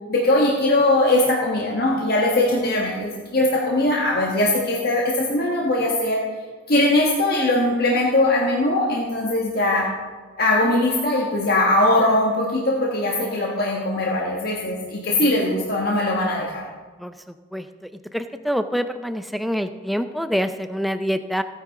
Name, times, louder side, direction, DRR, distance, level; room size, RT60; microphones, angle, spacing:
voice 1, 0.1-6.2 6.7-9.9 10.4-16.6, left 1 dB, 55° left, -3 dB, 1.4 m, -20 dB
voice 2, 18.1-21.4, equal, ahead, 9 dB, 0.4 m, -25 dB
16.0 x 9.6 x 3.7 m, 1.4 s
head